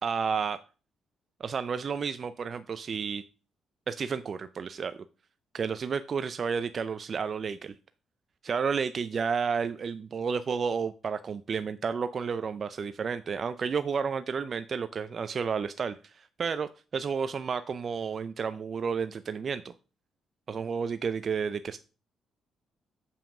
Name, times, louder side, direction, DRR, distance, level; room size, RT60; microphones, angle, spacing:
voice 1, 0.0-0.6 1.4-3.2 3.9-5.0 5.5-7.7 8.4-19.7 20.5-21.8, right 6 dB, 45° right, 12 dB, 0.5 m, -31 dB
7.2 x 5.7 x 6.0 m, 0.34 s
cardioid pair, 90°, 0 cm